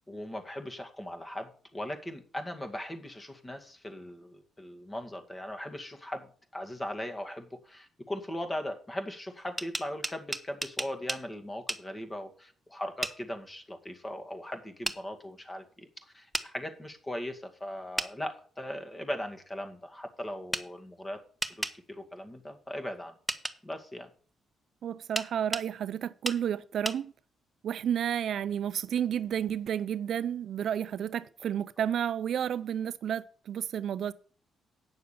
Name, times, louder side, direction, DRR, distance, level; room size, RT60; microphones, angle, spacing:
voice 1, 0.1-15.9 16.1-21.2 21.5-23.1 23.6-24.1, left 1 dB, 20° left, 2.1 m, -39 dB
sound 1, 9.4-11.2 11.7-11.8 13.0-13.2 14.8-15.0 16.3-16.5 18.0-18.1 20.5-20.7 21.4-21.8 23.3-23.6 25.2-25.7 26.2-26.4 26.8-27.0, right 1 dB, 10° right, 0.9 m, -33 dB
voice 2, 24.8-27.1 27.6-34.1, right 9 dB, 65° right, 0.4 m, -31 dB
9.0 x 6.6 x 6.8 m
cardioid pair, 90°, 0 cm